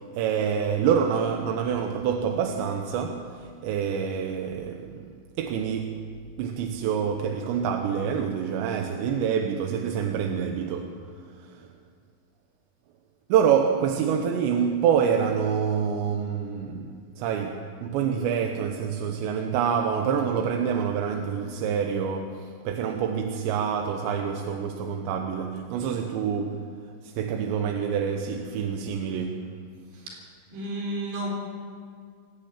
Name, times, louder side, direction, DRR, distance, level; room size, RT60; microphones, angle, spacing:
voice 1, 0.0-6.1 6.4-11.0 11.4-11.7 13.3-26.7 27.0-29.5, right 7 dB, 90° right, 3.4 m, -27 dB
voice 2, 29.9-30.2 30.5-31.3, right 1 dB, 65° right, 6.1 m, -32 dB
21.5 x 15.5 x 9.0 m
omnidirectional pair, 4.9 m